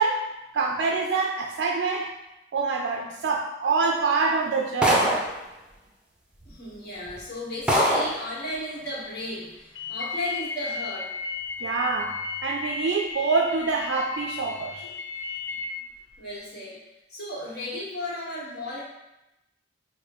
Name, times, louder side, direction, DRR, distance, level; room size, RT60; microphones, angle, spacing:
voice 1, 0.0-2.1 2.5-5.2 11.6-12.1 12.4-15.2, right 4 dB, 75° right, 0 dB, 0.4 m, -26 dB
sound 1, 4.8-5.4 6.4-6.5 7.1-7.2 7.7-8.2, equal, 5° right, 0.5 m, -22 dB
voice 2, 6.4-11.1 14.8-15.0 16.2-16.8 17.1-18.8, left 1 dB, 60° left, -7 dB, 1.4 m, -35 dB
sound 2, 9.7-15.6, left 4 dB, 80° left, 0.5 m, -34 dB
4.7 x 2.2 x 3.0 m, 0.92 s
head